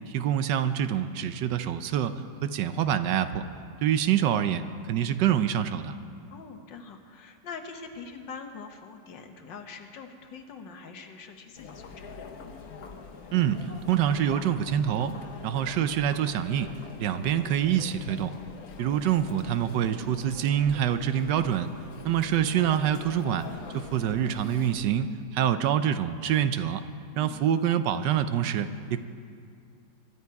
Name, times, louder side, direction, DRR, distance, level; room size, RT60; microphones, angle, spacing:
voice 1, 0.1-3.4 3.8-6.0 13.3-15.1 15.4-16.7 17.0-18.3 18.8-21.7 22.0-23.5 23.7-26.8 27.2-29.0, right 9 dB, 75° right, 11 dB, 1.2 m, -26 dB
voice 2, 6.3-12.2 18.7-19.3 27.1-27.5, left 5 dB, 75° left, 5 dB, 1.8 m, -44 dB
Chatter, 11.5-24.8, left 4 dB, 60° left, 1.4 m, -44 dB
24.0 x 11.5 x 4.7 m, 2.3 s
omnidirectional pair, 2.0 m